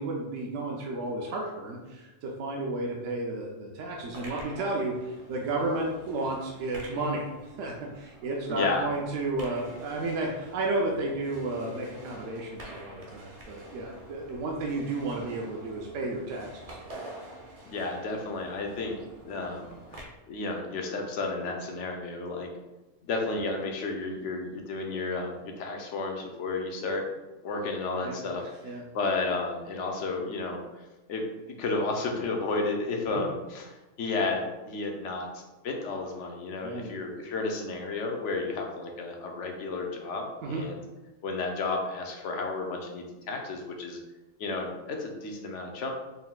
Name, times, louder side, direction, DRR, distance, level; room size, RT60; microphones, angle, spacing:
voice 1, 0.0-7.2 7.6-16.8 28.0-28.2 28.6-28.8 33.1-33.3 36.6-36.9 40.4-40.6, right 2 dB, 75° right, -1 dB, 0.9 m, -32 dB
sound 1, 3.8-20.0, right 1 dB, 35° right, 0.6 m, -48 dB
voice 2, 8.5-8.9 17.7-19.0 19.2-22.5 23.0-27.0 27.4-30.6 31.1-40.8 41.2-44.0 44.4-45.9, left 3 dB, 70° left, 2 dB, 1.0 m, -32 dB
4.2 x 3.8 x 2.3 m, 1.1 s
omnidirectional pair, 1.4 m